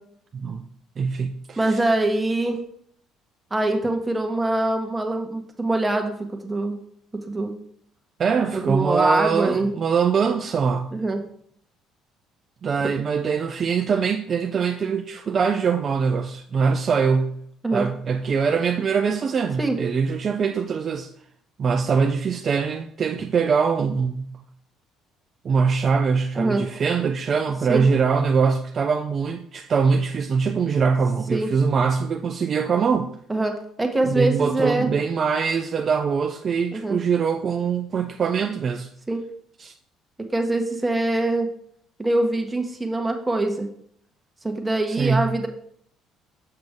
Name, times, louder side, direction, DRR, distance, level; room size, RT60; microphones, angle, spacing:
voice 1, 1.0-1.8 8.2-10.9 12.6-17.3 17.7-21.1 21.6-24.3 25.4-33.1 34.0-38.9 39.6-39.7 44.9-45.3, right 5 dB, 40° right, 0.4 m, -23 dB
voice 2, 1.6-2.6 3.5-6.2 6.4-6.8 7.3-7.5 8.5-9.7 10.9-11.2 17.6-17.9 19.6-19.8 26.4-26.6 27.7-27.9 31.3-31.5 33.3-34.9 36.7-37.0 39.1-39.2 40.2-41.5 42.0-43.7 44.4-45.5, right 2 dB, 15° right, 1.1 m, -23 dB
6.5 x 6.0 x 3.5 m
cardioid pair, 95°, 0 cm